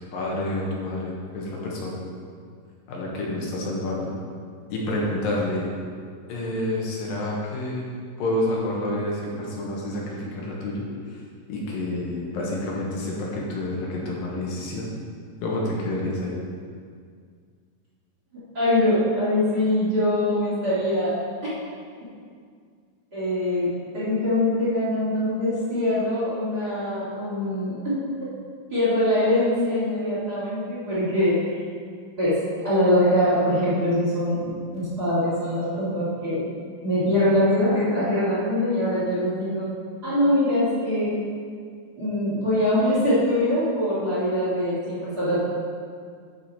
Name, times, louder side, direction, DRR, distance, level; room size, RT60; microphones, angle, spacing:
voice 1, 0.1-2.0 2.9-4.1 4.7-5.7 6.3-7.9 8.2-10.9 11.5-14.8 15.4-16.3, left 1 dB, 80° left, -4 dB, 3.0 m, -28 dB
voice 2, 18.5-21.1 23.1-27.9 28.7-31.6 32.2-32.4 32.6-34.4 34.7-36.4 36.8-39.7 40.0-41.1 42.0-45.4, left 1 dB, 30° right, -11 dB, 2.6 m, -23 dB
11.0 x 4.9 x 4.3 m, 2.1 s
omnidirectional pair, 4.1 m